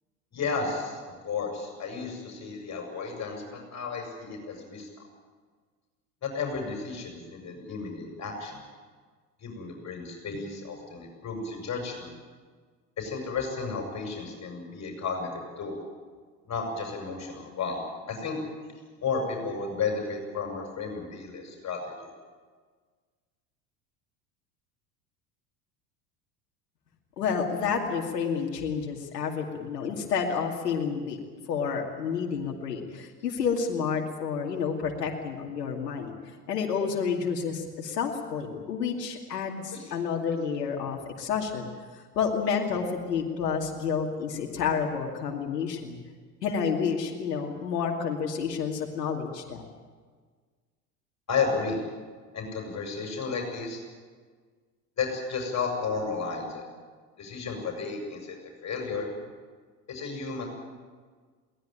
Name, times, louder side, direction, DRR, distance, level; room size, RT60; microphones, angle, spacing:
voice 1, 0.3-4.9 6.2-8.6 9.4-12.1 13.0-15.8 16.4-18.4 19.0-22.1 39.7-39.8 51.3-51.8 52.3-53.8 55.0-56.7 57.2-58.4 58.6-59.1 59.9-60.4, left 4 dB, 35° left, 2 dB, 7.4 m, -33 dB
voice 2, 27.2-31.2 31.5-36.1 36.5-46.0 46.4-49.7, left 6 dB, 80° left, 1 dB, 2.6 m, -30 dB
22.5 x 18.5 x 9.0 m, 1.5 s
hypercardioid pair, 75°, 47 cm